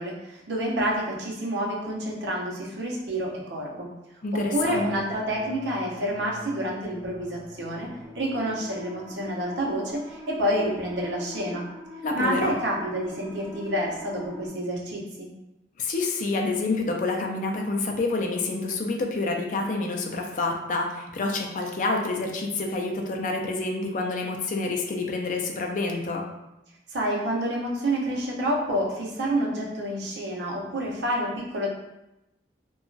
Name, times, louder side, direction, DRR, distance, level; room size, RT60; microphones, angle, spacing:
voice 1, 0.0-3.9 4.3-7.9 8.2-11.6 12.1-15.3 26.9-31.7, right 1 dB, 75° right, -3 dB, 0.6 m, -28 dB
voice 2, 4.2-5.1 12.0-12.5 15.8-26.2, left 3 dB, 45° left, 2 dB, 0.4 m, -28 dB
sound 1, 4.5-14.5, equal, 20° right, 0.5 m, -44 dB
2.8 x 2.3 x 2.6 m, 0.94 s
head